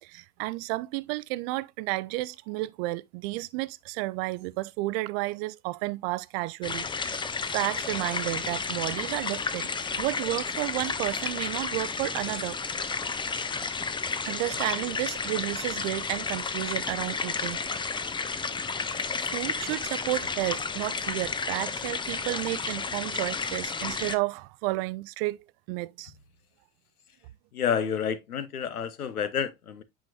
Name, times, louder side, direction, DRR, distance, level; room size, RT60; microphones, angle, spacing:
voice 1, 0.0-7.3 7.5-9.7 10.0-12.6 13.4-13.5 14.2-17.9 19.2-26.1, right 20 dB, 45° right, 0.5 m, -32 dB
sound 1, 6.6-24.2, left 5 dB, 10° left, 0.5 m, -32 dB
voice 2, 27.5-29.8, left 7 dB, 80° left, 0.8 m, -29 dB
8.6 x 5.1 x 2.8 m
figure-of-eight pair, 70°, 44 cm